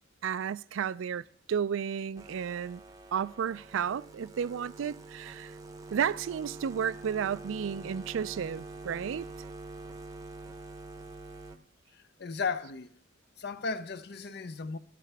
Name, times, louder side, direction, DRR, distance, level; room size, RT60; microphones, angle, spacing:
voice 1, 0.2-2.8 3.1-5.5 5.9-9.3, right 7 dB, 75° right, 0.4 m, -32 dB
sound 1, 2.2-11.6, right 2 dB, 20° right, 0.7 m, -46 dB
voice 2, 11.9-13.0 13.4-14.8, left 4 dB, 55° left, 0.6 m, -35 dB
13.0 x 12.5 x 3.4 m
head